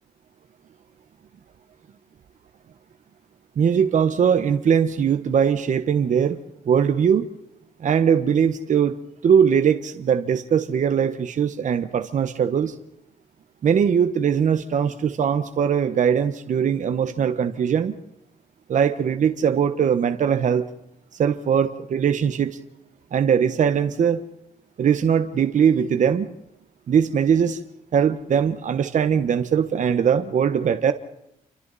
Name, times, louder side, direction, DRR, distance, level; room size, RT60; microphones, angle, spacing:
voice 1, 3.6-6.4 6.7-7.3 7.8-9.0 9.2-12.7 13.6-18.0 18.7-20.7 21.2-22.6 23.1-24.2 24.8-26.3 26.9-27.6 27.9-30.9, right 7 dB, 60° right, 9 dB, 1.2 m, -20 dB
29.0 x 25.0 x 4.2 m, 0.79 s
cardioid pair, 125°, 15 cm